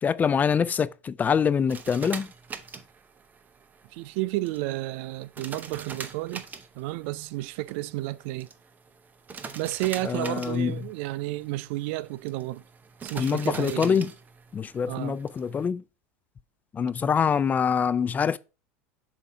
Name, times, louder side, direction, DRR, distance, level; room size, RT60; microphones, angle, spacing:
voice 1, 0.0-2.3 10.0-10.7 13.2-14.1 14.5-15.8 16.7-18.4, left 6 dB, 25° left, 0.3 m, -25 dB
sound 1, 1.7-15.7, right 5 dB, 25° right, 0.7 m, -44 dB
voice 2, 3.9-6.4 6.7-8.5 9.5-12.6 13.0-14.1 14.9-15.2, right 18 dB, 65° right, 0.4 m, -32 dB
7.1 x 2.7 x 4.8 m
supercardioid pair, 105°, 7 cm